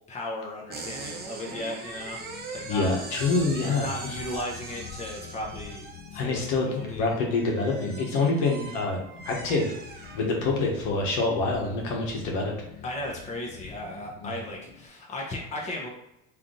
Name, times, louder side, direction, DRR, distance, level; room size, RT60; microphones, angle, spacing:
voice 1, 0.1-2.2 2.5-2.9 3.8-5.8 6.1-7.1 12.8-15.9, left 1 dB, 20° left, -1 dB, 0.9 m, -36 dB
sound 1, 0.7-10.7, right 3 dB, 30° right, 0.8 m, -41 dB
sound 2, 0.9-14.9, left 7 dB, 35° left, 0.6 m, -47 dB
voice 2, 2.6-4.1 6.1-9.0 9.2-9.7 10.1-12.5 14.2-14.3, left 3 dB, 70° left, -1 dB, 1.3 m, -26 dB
3.4 x 2.8 x 3.9 m, 0.86 s
supercardioid pair, 120°, 31 cm